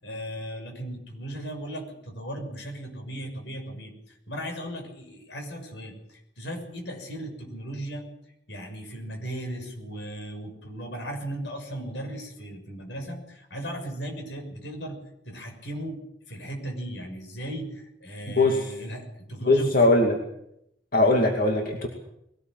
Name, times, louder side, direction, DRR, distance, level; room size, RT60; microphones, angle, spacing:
voice 1, 0.0-16.0 16.3-20.1, right 1 dB, 75° left, 5 dB, 6.5 m, -37 dB
voice 2, 18.4-18.7 19.5-20.2 20.9-21.9, left 2 dB, 55° left, 2 dB, 2.5 m, -20 dB
22.0 x 18.0 x 7.7 m, 0.78 s
head